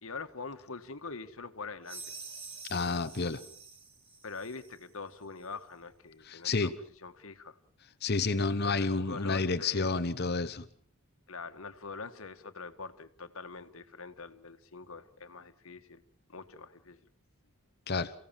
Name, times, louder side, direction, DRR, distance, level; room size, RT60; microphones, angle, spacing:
voice 1, 0.0-2.0 4.2-6.7 7.0-7.6 8.6-9.9 11.3-16.0 16.3-17.0, left 4 dB, 70° left, 9 dB, 1.6 m, -44 dB
sound 1, 1.8-4.8, right 4 dB, 25° right, 3.0 m, -47 dB
voice 2, 2.7-3.4 6.2-6.7 8.0-10.6 17.9-18.1, left 3 dB, 50° left, 12 dB, 0.9 m, -30 dB
28.5 x 16.5 x 7.4 m, 0.64 s
head